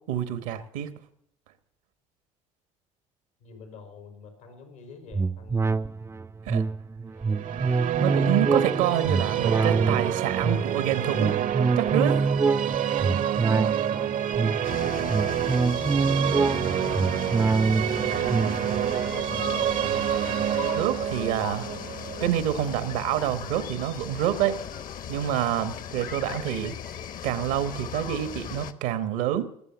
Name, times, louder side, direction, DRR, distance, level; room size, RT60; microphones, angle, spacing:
voice 1, 0.1-1.0 6.5-6.6 8.0-11.4 11.8-12.3 20.6-21.7 22.2-24.6 25.1-26.7 27.2-29.5, right 11 dB, 85° right, 12 dB, 1.2 m, -27 dB
voice 2, 3.4-5.8 14.3-15.5 15.8-19.5, left 5 dB, 90° left, 4 dB, 4.5 m, -47 dB
sound 1, 5.1-20.9 21.3-21.4, right 4 dB, 15° right, 0.5 m, -26 dB
sound 2, 7.3-23.3, right 10 dB, 55° right, 0.7 m, -28 dB
sound 3, 14.6-28.7, left 8 dB, 55° left, 1.1 m, -38 dB
21.0 x 7.2 x 7.0 m, 0.74 s
supercardioid pair, 75°, 16 cm